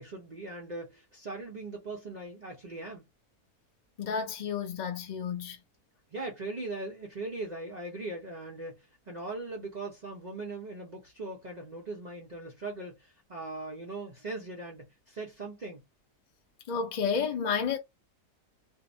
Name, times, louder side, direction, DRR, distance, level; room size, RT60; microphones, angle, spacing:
voice 1, 0.0-3.0 6.1-15.8, right 2 dB, 55° right, 0.4 m, -40 dB
voice 2, 4.0-5.6 16.7-17.8, left 6 dB, 50° left, 0.5 m, -31 dB
2.8 x 2.0 x 2.6 m
omnidirectional pair, 1.7 m